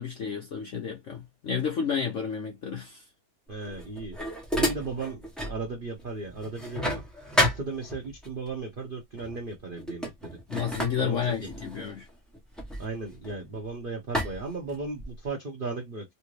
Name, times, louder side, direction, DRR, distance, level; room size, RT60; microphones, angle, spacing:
voice 1, 0.0-3.0 10.5-12.1, left 7 dB, 70° left, 0.7 m, -31 dB
voice 2, 3.5-4.2 4.5-7.0 7.4-10.4 10.9-11.5 12.8-16.1, right 3 dB, 85° right, 0.4 m, -36 dB
sound 1, 3.6-5.6 6.0-8.3 9.2-9.4 9.8-13.6 14.1-15.3, equal, ahead, 0.5 m, -31 dB
3.4 x 2.7 x 3.1 m
omnidirectional pair, 2.1 m